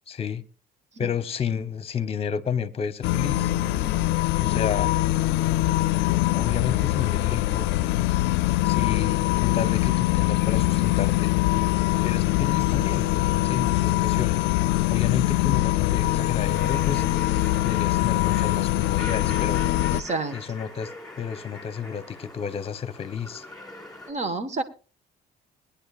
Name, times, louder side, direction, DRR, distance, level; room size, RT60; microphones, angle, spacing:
voice 1, 0.1-0.4 1.0-3.5 4.4-4.9 6.3-7.7 8.6-11.3 12.0-13.1 13.4-14.5 14.9-17.0 17.6-19.6 20.3-20.9 21.2-23.4, left 7 dB, 35° left, 0.9 m, -31 dB
sound 1, 3.0-20.0, left 16 dB, 90° left, 0.5 m, -23 dB
sound 2, 3.6-22.3, right 1 dB, 15° right, 5.4 m, -55 dB
sound 3, 16.5-24.1, left 2 dB, 5° left, 4.8 m, -42 dB
voice 2, 19.9-20.4 24.1-24.6, right 3 dB, 40° right, 1.5 m, -29 dB
21.0 x 10.0 x 2.4 m
cardioid pair, 110°, 17 cm